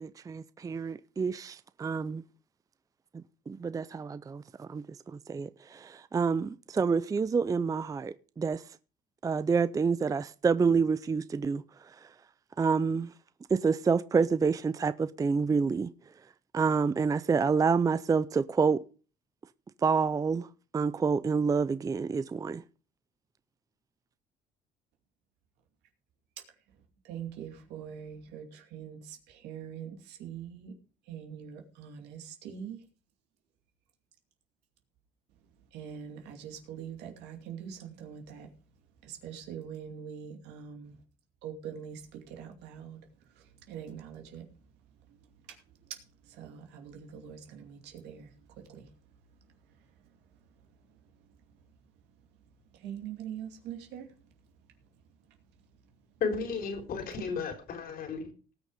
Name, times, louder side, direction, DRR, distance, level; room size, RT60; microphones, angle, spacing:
voice 1, 0.0-2.2 3.5-8.6 9.2-11.6 12.6-13.1 13.5-15.9 16.5-18.8 19.8-20.5 20.7-22.6, right 5 dB, 20° right, 0.5 m, -28 dB
voice 2, 27.1-30.7 31.1-32.8 35.7-38.5 39.0-41.0 41.4-43.0 43.7-44.4 46.3-48.3 48.7-48.9 52.8-54.1, right 8 dB, 90° right, 2.5 m, -43 dB
voice 3, 56.2-58.3, left 5 dB, 60° left, 3.6 m, -33 dB
18.5 x 6.4 x 4.9 m
cardioid pair, 110°, 17 cm